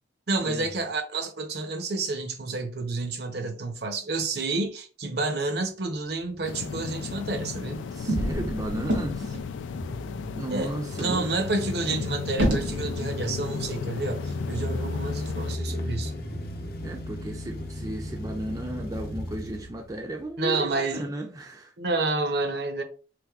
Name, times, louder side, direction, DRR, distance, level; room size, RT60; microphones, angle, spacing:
voice 1, 0.3-7.8 10.5-16.1 20.4-21.1 21.8-22.8, right 3 dB, 60° right, 0.7 m, -29 dB
sound 1, 6.1-20.4, left 1 dB, 55° left, 0.6 m, -37 dB
sound 2, 6.4-15.6, left 6 dB, 85° left, 0.3 m, -35 dB
sound 3, 7.7-9.6 10.1-10.2 10.4-10.5 11.0-13.0, right 1 dB, 80° right, 1.2 m, -29 dB
voice 2, 7.9-9.4 10.3-11.3 16.8-21.7, right 1 dB, 20° right, 0.4 m, -35 dB
3.5 x 3.3 x 2.3 m
head